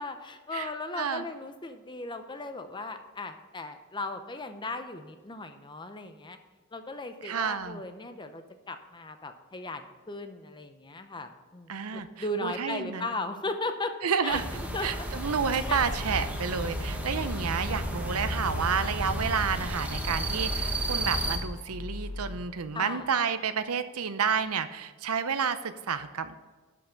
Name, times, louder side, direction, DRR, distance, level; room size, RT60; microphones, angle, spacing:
voice 1, 0.0-6.4 6.7-13.9 14.2-14.4 14.7-15.1 15.7-15.8 22.7-23.1, left 2 dB, 20° left, 8 dB, 0.7 m, -37 dB
voice 2, 1.0-1.3 7.2-7.8 11.7-12.1 12.4-13.1 14.0-14.4 14.8-26.4, right 6 dB, 80° right, 11 dB, 0.7 m, -30 dB
sound 1, 14.3-21.4, right 1 dB, 5° right, 1.2 m, -33 dB
sound 2, 15.7-22.4, left 1 dB, 85° left, 1.2 m, -38 dB
12.5 x 5.7 x 5.2 m, 1.4 s
head